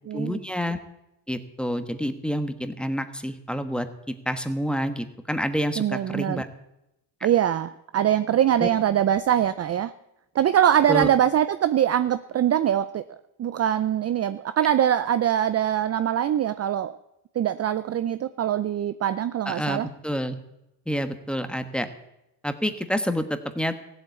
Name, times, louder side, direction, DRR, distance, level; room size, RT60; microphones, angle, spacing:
voice 1, 0.1-0.8 1.3-3.9 4.2-6.5 8.6-8.7 10.9-11.1 19.4-20.4 20.9-21.9 22.4-23.7, equal, ahead, 8 dB, 1.2 m, -28 dB
voice 2, 5.8-6.4 7.2-9.9 10.4-13.0 13.4-16.9 17.4-19.9, right 10 dB, 35° right, 13 dB, 0.5 m, -23 dB
15.5 x 8.0 x 8.3 m, 0.88 s
cardioid pair, 90°, 46 cm